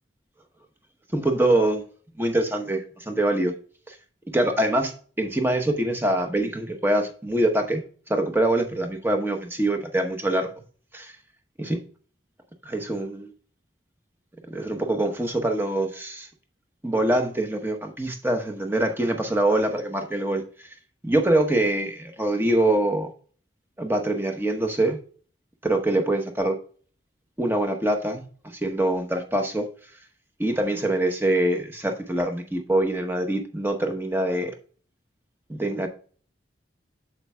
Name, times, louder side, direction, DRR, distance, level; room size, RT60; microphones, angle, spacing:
voice 1, 1.1-1.8 2.2-3.5 3.9-4.0 4.3-4.9 5.2-7.8 8.1-10.5 10.9-11.1 11.6-11.8 12.6-13.3 14.5-16.3 16.8-20.7 21.0-23.1 23.8-25.0 25.6-26.6 27.4-28.2 28.6-29.7 30.4-34.5 35.5-35.9, right 1 dB, 10° right, 5 dB, 0.9 m, -24 dB
8.5 x 7.3 x 2.3 m, 0.43 s
head